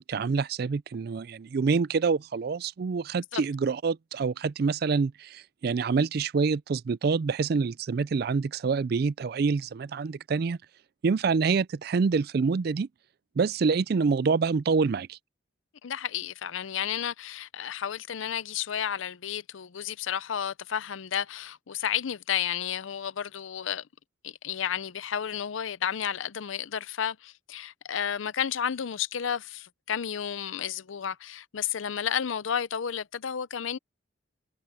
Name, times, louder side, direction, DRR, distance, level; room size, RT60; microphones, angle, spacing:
voice 1, 0.0-10.6 11.0-12.9 13.4-15.2, right 5 dB, 50° right, 0.4 m, -26 dB
voice 2, 15.8-23.8 24.2-33.8, left 8 dB, 80° left, 0.5 m, -32 dB
head